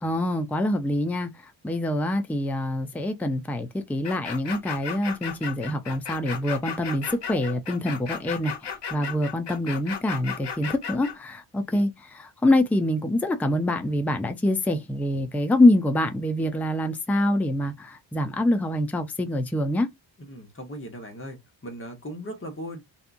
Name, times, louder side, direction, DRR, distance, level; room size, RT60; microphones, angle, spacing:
voice 1, 0.0-19.9, left 1 dB, 5° left, 0.4 m, -25 dB
sound 1, 4.0-11.1, left 7 dB, 60° left, 0.9 m, -35 dB
voice 2, 20.2-22.8, equal, 25° left, 1.1 m, -38 dB
2.7 x 2.3 x 2.5 m
cardioid pair, 90°, 47 cm